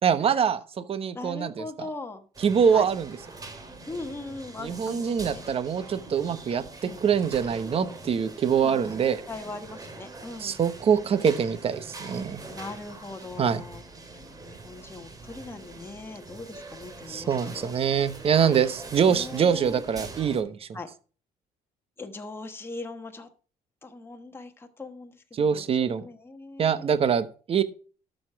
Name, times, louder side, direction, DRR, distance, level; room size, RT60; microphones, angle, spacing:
voice 1, 0.0-1.6 2.4-3.1 4.6-6.6 7.0-9.2 10.4-12.4 13.4-13.6 17.1-20.7 25.3-26.1 26.6-27.6, right 7 dB, 40° right, 14 dB, 1.0 m, -24 dB
voice 2, 1.1-2.2 2.7-2.9 3.9-5.4 6.8-7.0 8.6-9.0 9.3-10.6 12.5-13.8 14.1-17.7 18.4-18.7 18.9-19.8 20.7-20.9 22.0-23.3 23.8-27.0, left 3 dB, 15° left, 5 dB, 1.2 m, -40 dB
sound 1, 2.3-20.4, right 3 dB, 25° right, 2.2 m, -43 dB
12.5 x 6.6 x 4.6 m, 0.39 s
cardioid pair, 120°, 14 cm